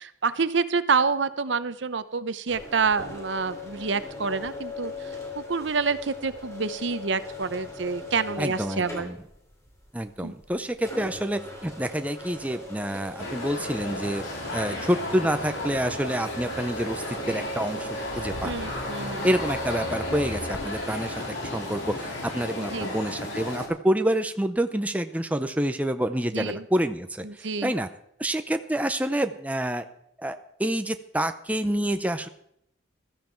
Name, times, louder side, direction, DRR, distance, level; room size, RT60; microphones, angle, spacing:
voice 1, 0.0-4.9 5.3-9.1 10.2-10.3 18.4-19.3 22.6-22.9 26.3-26.6 27.2-27.7, right 5 dB, 70° right, 13 dB, 0.8 m, -27 dB
sound 1, 2.5-20.6, left 1 dB, 15° left, 3.6 m, -40 dB
voice 2, 8.4-9.2 9.9-18.7 19.2-27.9 28.2-29.9 30.2-32.3, right 1 dB, 5° right, 8 dB, 0.6 m, -28 dB
sound 2, 13.2-23.7, left 2 dB, 80° left, 4.9 m, -33 dB
16.0 x 14.0 x 4.5 m, 0.73 s
head